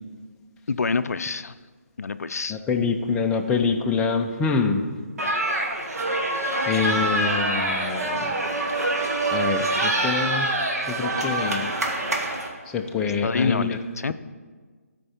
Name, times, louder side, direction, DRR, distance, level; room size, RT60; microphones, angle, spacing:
voice 1, 0.7-1.5 2.0-2.6 6.8-7.4 13.2-14.1, left 4 dB, 75° left, 13 dB, 0.4 m, -27 dB
voice 2, 2.5-4.9 6.7-8.3 9.3-10.5 10.9-11.7 12.7-13.8, left 5 dB, 10° left, 2 dB, 0.4 m, -25 dB
sound 1, 5.2-12.5, right 2 dB, 75° right, 1.5 m, -25 dB
13.0 x 4.5 x 4.3 m, 1.5 s
figure-of-eight pair, 150°, 8 cm